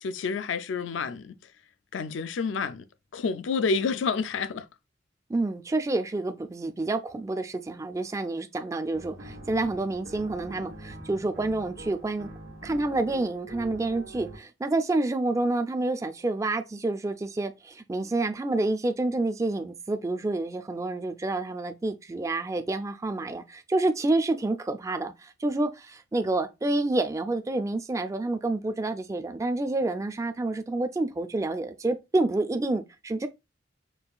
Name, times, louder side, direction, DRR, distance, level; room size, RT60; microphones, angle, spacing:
voice 1, 0.0-1.4 1.9-2.9 3.1-4.7, left 5 dB, 85° left, 0.4 m, -29 dB
voice 2, 5.3-12.3 12.6-33.3, right 2 dB, 15° right, 0.3 m, -28 dB
sound 1, 8.9-14.4, right 1 dB, 90° right, 1.1 m, -44 dB
5.4 x 2.4 x 2.3 m
head